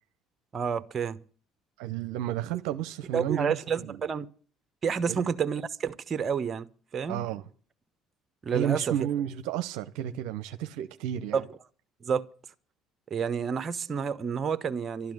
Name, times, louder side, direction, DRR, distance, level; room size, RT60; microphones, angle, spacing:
voice 1, 0.5-1.2 3.1-4.3 4.8-6.7 6.9-7.2 8.4-8.9 11.3-11.4 12.0-12.2 13.1-15.1, right 6 dB, 40° right, 1.1 m, -29 dB
voice 2, 1.8-4.0 5.1-5.3 7.1-7.5 8.5-11.4, right 11 dB, 80° right, 0.8 m, -32 dB
12.5 x 10.5 x 8.0 m
hypercardioid pair, 70°, 0 cm